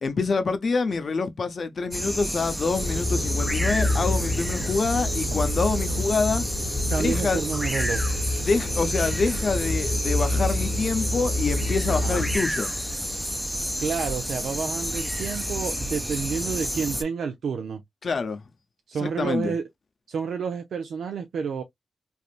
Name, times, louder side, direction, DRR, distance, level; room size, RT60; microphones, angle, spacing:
voice 1, 0.0-6.4 6.9-7.4 8.4-12.7 18.0-18.4 19.0-19.5, left 4 dB, 55° left, 0.7 m, -26 dB
sound 1, 1.9-17.0, equal, ahead, 0.6 m, -30 dB
sound 2, 2.7-12.4, left 1 dB, 85° left, 1.2 m, -28 dB
voice 2, 6.9-8.0 11.9-12.2 13.8-17.8 18.9-19.7 20.1-21.6, right 6 dB, 75° right, 0.5 m, -29 dB
3.4 x 2.5 x 2.4 m
cardioid pair, 50°, 0 cm